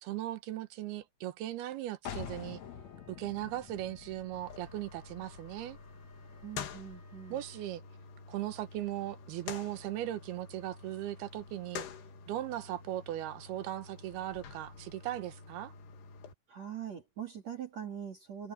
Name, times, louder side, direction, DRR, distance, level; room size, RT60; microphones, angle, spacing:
voice 1, 0.0-2.6 3.1-5.8 7.3-7.8 8.3-11.9 12.3-15.7, right 13 dB, 75° right, 3.0 m, -38 dB
sound 1, 2.1-7.6, left 8 dB, 55° left, 2.1 m, -48 dB
sound 2, 2.4-7.9, equal, 5° right, 4.6 m, -65 dB
sound 3, 4.3-16.3, left 6 dB, 80° left, 4.0 m, -48 dB
voice 2, 6.4-7.5 16.5-18.5, right 9 dB, 45° right, 3.7 m, -42 dB
omnidirectional pair, 4.7 m